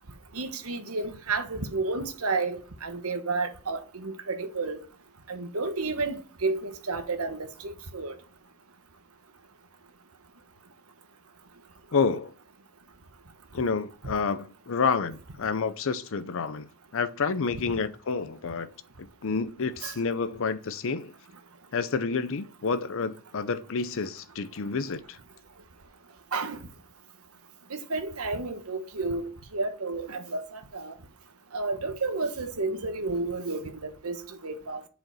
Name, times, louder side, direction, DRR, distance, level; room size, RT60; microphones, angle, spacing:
voice 1, 0.3-4.8 5.3-8.2 19.8-19.9 26.3-26.6 27.7-31.0 31.5-34.8, right 3 dB, 75° right, 1.2 m, -31 dB
voice 2, 11.9-12.3 13.5-16.7 16.9-18.7 19.0-21.1 21.7-25.2, left 5 dB, 65° left, 0.6 m, -29 dB
7.8 x 5.0 x 5.5 m
head